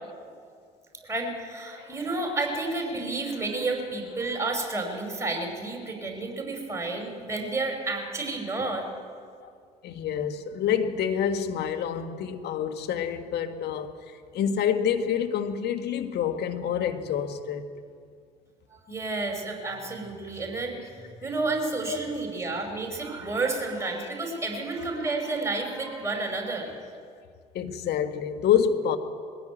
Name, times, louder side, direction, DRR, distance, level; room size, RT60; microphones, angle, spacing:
voice 1, 0.9-8.9 18.7-26.7, right 3 dB, 15° right, 5.5 m, -31 dB
voice 2, 9.8-13.9 14.3-17.7 21.9-22.0 27.6-29.0, left 8 dB, 55° left, 1.7 m, -27 dB
20.5 x 16.0 x 9.4 m
hypercardioid pair, 60°, 20 cm